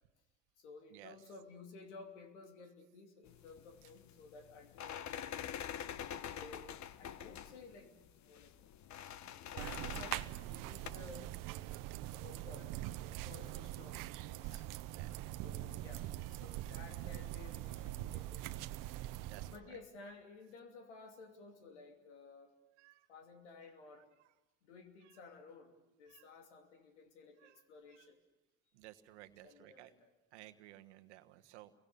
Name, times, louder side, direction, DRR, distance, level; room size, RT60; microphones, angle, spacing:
voice 1, 0.6-5.5 6.2-7.9 8.2-8.6 9.3-11.3 12.1-14.7 15.4-18.5 19.5-22.5 23.1-24.1 24.6-28.2 29.4-30.1, left 4 dB, 90° left, 5 dB, 2.9 m, -55 dB
sound 1, 3.3-10.9, left 10 dB, 55° left, 1.2 m, -46 dB
sound 2, 9.6-19.6, right 15 dB, 70° right, 1.0 m, -43 dB
voice 2, 19.3-19.8 22.8-23.1 26.1-26.3 27.4-27.6 28.0-28.1 28.7-29.9 30.3-31.7, right 16 dB, 85° right, 10 dB, 1.4 m, -57 dB
30.0 x 23.5 x 7.0 m, 0.99 s
hypercardioid pair, 60°, 34 cm